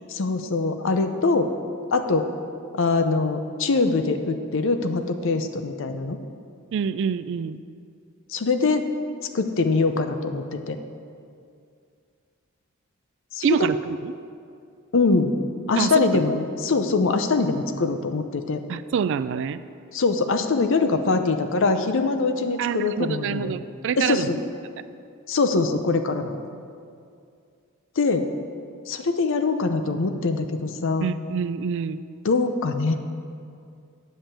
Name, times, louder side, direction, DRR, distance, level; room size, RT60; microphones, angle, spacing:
voice 1, 0.1-1.5 1.9-2.3 2.7-6.2 8.3-8.9 9.3-10.8 13.3-13.7 14.9-15.3 15.7-18.6 19.9-23.6 24.0-24.4 25.3-26.4 28.0-28.3 28.9-31.1 32.2-32.9, left 3 dB, 60° left, 8 dB, 0.6 m, -23 dB
voice 2, 6.7-7.6 13.4-14.1 15.8-16.2 18.7-19.6 22.6-24.3 31.0-32.0, right 6 dB, 60° right, 14 dB, 0.3 m, -26 dB
8.6 x 5.5 x 7.3 m, 2.4 s
head